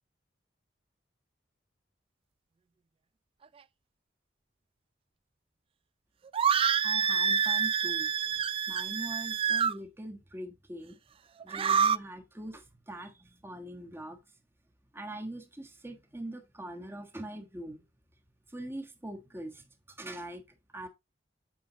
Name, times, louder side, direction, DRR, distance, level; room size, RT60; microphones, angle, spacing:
sound 1, 6.3-9.7 11.4-12.0, right 7 dB, 30° right, 0.3 m, -27 dB
voice 1, 6.8-11.0 11.4-14.2 14.9-17.8 18.5-20.4 20.7-20.9, right 1 dB, 15° right, 1.4 m, -42 dB
8.5 x 5.5 x 2.9 m
head